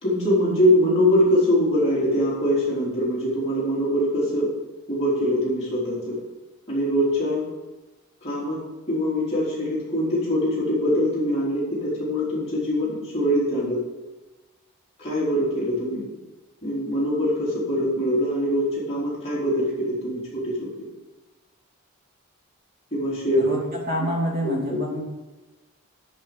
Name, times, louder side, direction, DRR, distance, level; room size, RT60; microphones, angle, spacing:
voice 1, 0.0-4.5 4.9-6.2 6.7-7.5 8.2-8.6 8.9-13.8 15.0-16.1 16.6-20.7 22.9-23.5 24.4-24.8, equal, 30° left, -9 dB, 3.6 m, -23 dB
voice 2, 23.4-25.0, equal, 45° right, -3 dB, 2.7 m, -27 dB
10.5 x 5.3 x 6.8 m, 1.2 s
head